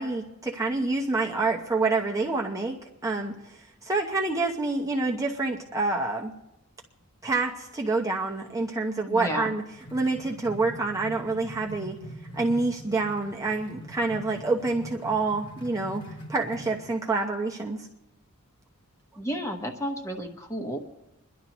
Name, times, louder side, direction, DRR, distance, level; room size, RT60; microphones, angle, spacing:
voice 1, 0.0-6.3 7.2-9.6 9.9-12.0 12.3-16.0 16.3-17.9, right 3 dB, 15° right, -1 dB, 0.9 m, -27 dB
voice 2, 9.1-9.5 19.2-20.8, equal, 15° left, 3 dB, 1.3 m, -32 dB
sound 1, 9.3-16.9, equal, 55° left, 1.5 m, -43 dB
26.5 x 11.0 x 3.0 m, 0.90 s
head